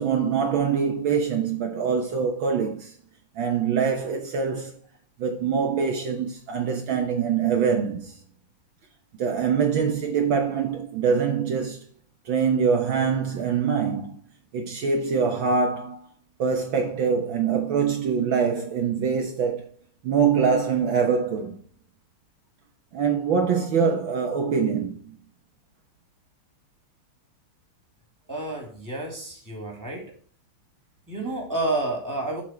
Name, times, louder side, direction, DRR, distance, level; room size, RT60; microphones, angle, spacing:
voice 1, 0.0-3.0 3.4-4.8 5.2-8.2 9.1-11.9 12.3-14.2 14.5-16.1 16.4-19.7 20.0-21.6 22.9-25.2, right 6 dB, 65° right, 1.8 m, -24 dB
voice 2, 28.3-30.1 31.1-32.4, right 2 dB, 10° right, 2.8 m, -30 dB
7.5 x 6.2 x 4.4 m
omnidirectional pair, 2.4 m